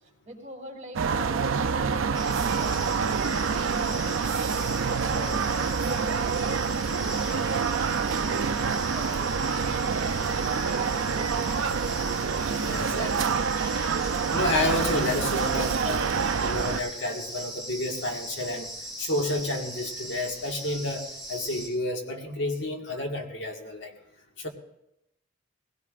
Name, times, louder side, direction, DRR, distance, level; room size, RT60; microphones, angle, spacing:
voice 1, 0.0-4.2 5.1-12.0, right 1 dB, 35° right, 0 dB, 3.0 m, -43 dB
sound 1, 0.9-16.8, right 5 dB, 85° right, 0.5 m, -27 dB
sound 2, 2.1-21.7, right 1 dB, 25° left, 4.9 m, -39 dB
voice 2, 12.6-13.4 14.3-16.1 16.4-18.7 19.0-23.9 24.4-24.5, left 1 dB, 65° left, 2 dB, 1.7 m, -30 dB
21.5 x 17.0 x 2.5 m, 0.82 s
head